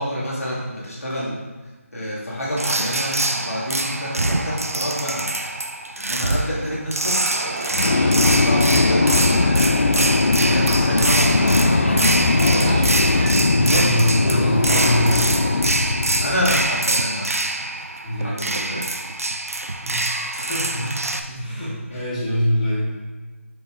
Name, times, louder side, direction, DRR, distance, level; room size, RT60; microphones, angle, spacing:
voice 1, 0.0-1.3 1.9-3.2 3.5-5.3 6.0-7.4 8.0-9.1 9.4-9.9 10.5-12.8 13.6-14.1 16.2-17.3 18.2-18.8 19.7-19.8 20.4-20.8 21.3-21.4 21.9-22.0, equal, 75° left, -6 dB, 2.0 m, -28 dB
sound 1, 2.6-21.2, right 2 dB, 75° right, 0.5 m, -24 dB
Livestock farm animals working animals, 7.3-13.3, right 2 dB, 15° right, 0.4 m, -32 dB
sound 2, 7.7-16.7, left 3 dB, 55° left, 0.3 m, -19 dB
voice 2, 13.4-15.6 18.0-18.7 19.8-20.9 21.3-22.9, equal, 30° left, -8 dB, 1.9 m, -24 dB
7.0 x 5.9 x 2.5 m, 1.3 s
figure-of-eight pair, 160°, 8 cm